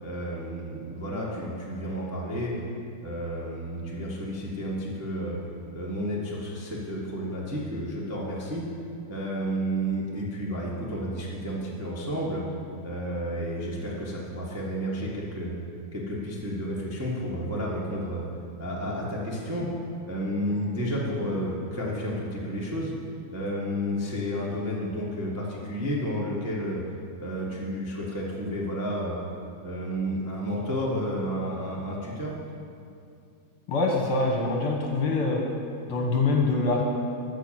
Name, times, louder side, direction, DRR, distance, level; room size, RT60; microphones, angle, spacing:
voice 1, 0.0-2.5 3.0-5.4 5.7-8.6 9.1-12.4 12.8-15.5 15.9-18.2 18.6-19.7 20.1-22.9 23.3-26.8 27.2-29.2 29.6-32.3, equal, 20° right, -5 dB, 0.4 m, -31 dB
voice 2, 33.7-35.4 35.9-36.8, left 3 dB, 55° left, -1 dB, 1.7 m, -24 dB
13.0 x 5.9 x 7.6 m, 2.4 s
omnidirectional pair, 3.5 m